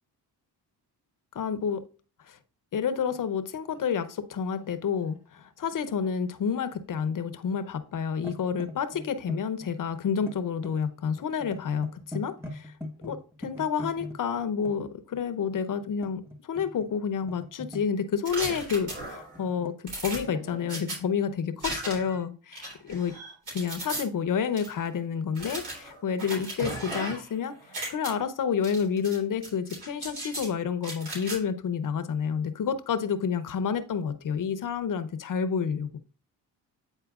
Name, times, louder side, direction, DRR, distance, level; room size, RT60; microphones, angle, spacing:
voice 1, 1.3-1.8 2.3-2.4 2.7-12.7 13.0-16.2 16.5-19.7 20.0-23.1 23.5-27.5 27.9-36.0, left 7 dB, 50° left, 11 dB, 0.8 m, -29 dB
sound 1, 3.0-3.2 3.7-6.2 6.5-7.6 7.9-14.7 15.8-16.9 17.2-18.1 19.2-20.7 21.6-21.8, left 1 dB, 5° right, 1.3 m, -42 dB
sound 2, 18.3-19.4 19.9-21.0 21.6-22.2 22.5-24.0 24.6-24.7 25.3-27.3 27.6-28.1 28.6-29.2 29.4-30.5 30.8-31.4, right 1 dB, 70° right, 3.4 m, -36 dB
8.9 x 4.3 x 2.4 m, 0.39 s
cardioid pair, 75°, 40 cm